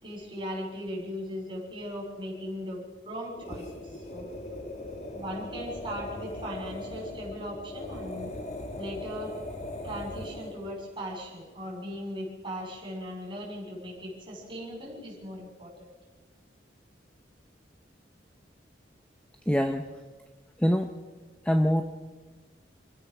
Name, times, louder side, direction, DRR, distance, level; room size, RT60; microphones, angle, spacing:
voice 1, 0.0-4.3 5.1-8.3 8.8-9.3 9.8-15.9, equal, 25° right, -4 dB, 6.5 m, -38 dB
sound 1, 3.3-10.7, left 1 dB, 40° left, 2.0 m, -39 dB
voice 2, 19.5-19.9 20.6-20.9 21.4-21.8, equal, 5° left, 5 dB, 0.8 m, -24 dB
27.5 x 16.0 x 6.1 m, 1.4 s
head